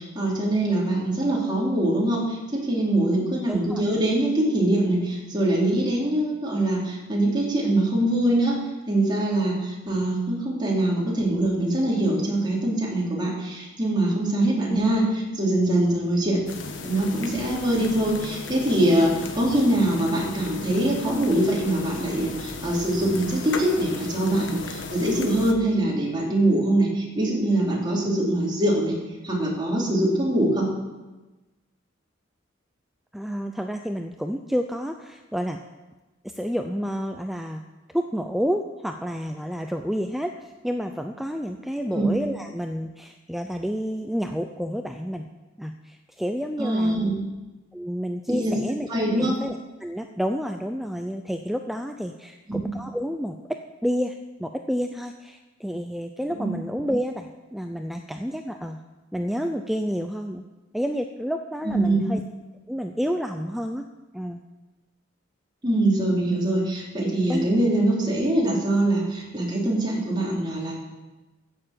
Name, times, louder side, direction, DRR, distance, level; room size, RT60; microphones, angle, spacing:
voice 1, 0.0-2.4 2.6-8.6 8.9-16.4 16.8-28.9 29.2-30.7 41.9-42.2 46.6-47.3 48.3-48.6 48.9-49.3 52.5-52.7 56.4-56.5 61.6-62.1 65.6-70.7, right 1 dB, 25° right, -4 dB, 3.6 m, -23 dB
voice 2, 3.5-3.8 14.7-14.8 33.1-35.6 36.2-37.6 37.9-45.3 45.6-47.2 47.7-48.9 49.2-53.4 53.8-58.8 59.1-60.4 60.7-62.2 62.7-63.9 64.1-64.4 67.3-67.6, equal, ahead, 5 dB, 0.5 m, -29 dB
sound 1, 16.5-25.5, left 3 dB, 70° left, 1.3 m, -36 dB
15.0 x 6.9 x 7.5 m, 1.1 s
head